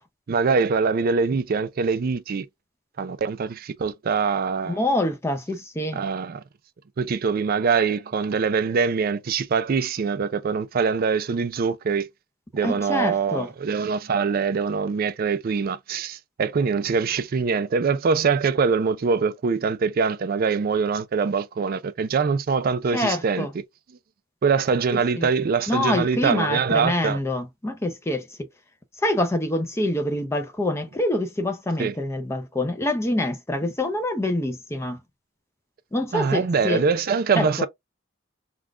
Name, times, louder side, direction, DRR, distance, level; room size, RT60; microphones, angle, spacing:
voice 1, 0.3-2.5 3.0-4.8 5.9-6.4 7.0-12.1 12.5-23.5 24.4-27.2 31.8-31.9 36.1-37.7, right 5 dB, 45° right, 0.4 m, -23 dB
voice 2, 4.7-6.0 12.6-13.5 22.9-23.5 25.2-25.3 25.7-28.3 29.0-35.0 35.9-36.8 37.3-37.7, left 1 dB, 15° left, 0.5 m, -25 dB
3.5 x 2.3 x 2.3 m
head